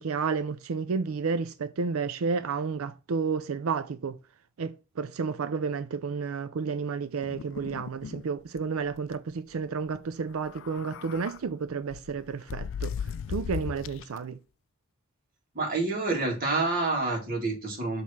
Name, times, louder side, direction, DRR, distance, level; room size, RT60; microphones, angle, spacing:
voice 1, 0.0-4.2 4.6-12.9 13.3-14.4, right 5 dB, 80° right, 0.5 m, -31 dB
sound 1, 7.2-8.2 8.6-8.7 8.9-9.2 10.3-11.4 11.9-14.2, left 7 dB, 65° left, 0.3 m, -37 dB
voice 2, 15.5-18.0, right 3 dB, 45° right, 2.4 m, -28 dB
6.3 x 3.6 x 5.7 m
head